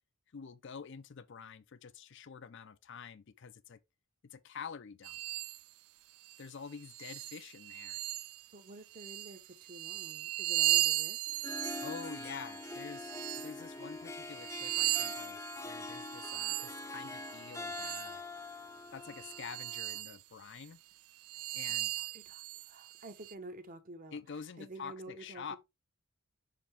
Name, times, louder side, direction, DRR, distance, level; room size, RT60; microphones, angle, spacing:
voice 1, 0.3-3.8 4.2-5.2 6.4-8.0 11.8-15.4 15.6-18.2 18.9-20.8 21.5-21.9 24.1-25.6, left 6 dB, 55° left, 0.5 m, -47 dB
sound 1, 5.0-5.6 6.2-6.4 6.9-8.5 8.9-13.5 14.1-18.2 19.0-20.2 20.6-20.7 21.2-23.3, right 16 dB, 90° right, 0.4 m, -37 dB
voice 2, 8.5-11.3 21.3-25.6, right 2 dB, 40° right, 1.0 m, -50 dB
Harp, 11.3-20.0, left 3 dB, 15° left, 0.6 m, -44 dB
5.8 x 5.1 x 3.3 m
head